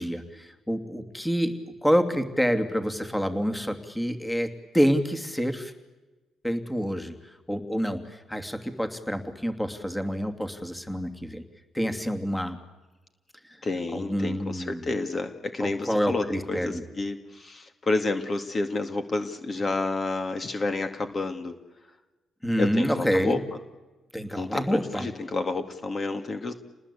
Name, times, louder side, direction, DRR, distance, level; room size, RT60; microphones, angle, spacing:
voice 1, 0.0-1.5 1.8-5.7 6.4-7.1 7.5-11.4 11.7-12.6 13.9-14.9 15.6-16.8 22.4-23.4 24.1-25.1, equal, 5° left, 7 dB, 2.8 m, -27 dB
voice 2, 13.6-21.6 22.6-23.4 24.4-26.5, left 3 dB, 35° left, 7 dB, 2.3 m, -30 dB
29.0 x 20.0 x 8.5 m, 1.2 s
cardioid pair, 90°, 0 cm